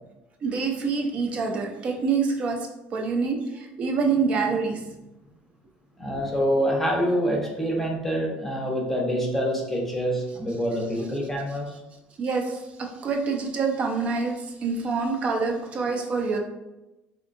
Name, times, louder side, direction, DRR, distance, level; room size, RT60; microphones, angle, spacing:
voice 1, 0.4-4.9 12.2-16.4, right 4 dB, 35° right, 2 dB, 0.5 m, -26 dB
voice 2, 6.0-11.7, equal, 10° left, -1 dB, 0.7 m, -26 dB
4.2 x 2.7 x 2.5 m, 0.98 s
cardioid pair, 155°, 4 cm